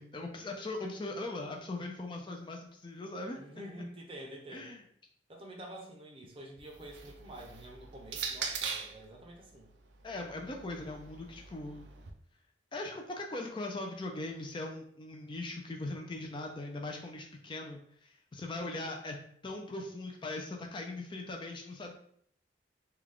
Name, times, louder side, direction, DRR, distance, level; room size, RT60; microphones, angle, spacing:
voice 1, 0.0-3.4 4.5-4.8 10.0-11.9 12.7-19.2 19.4-21.9, left 2 dB, 25° left, 2 dB, 0.4 m, -40 dB
voice 2, 3.4-4.8 5.3-9.7 18.5-19.0, right 1 dB, 30° right, 0 dB, 0.6 m, -48 dB
sound 1, 6.6-9.0 10.0-12.1, right 6 dB, 80° right, 0.5 m, -41 dB
3.3 x 2.3 x 3.6 m, 0.64 s
head